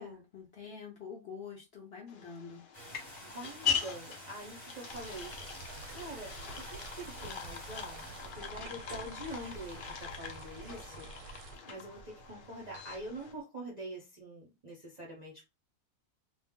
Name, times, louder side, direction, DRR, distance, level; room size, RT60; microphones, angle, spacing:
voice 1, 0.0-2.6, left 6 dB, 55° left, 0.7 m, -46 dB
sound 1, 2.1-13.3, left 7 dB, 85° left, 0.4 m, -41 dB
sound 2, 2.7-13.4, equal, 20° left, 1.1 m, -51 dB
voice 2, 3.2-5.4 5.9-11.3 11.7-15.4, right 1 dB, 45° right, 0.6 m, -45 dB
sound 3, 4.9-11.6, right 4 dB, 90° right, 1.1 m, -49 dB
2.5 x 2.0 x 3.6 m
omnidirectional pair, 1.6 m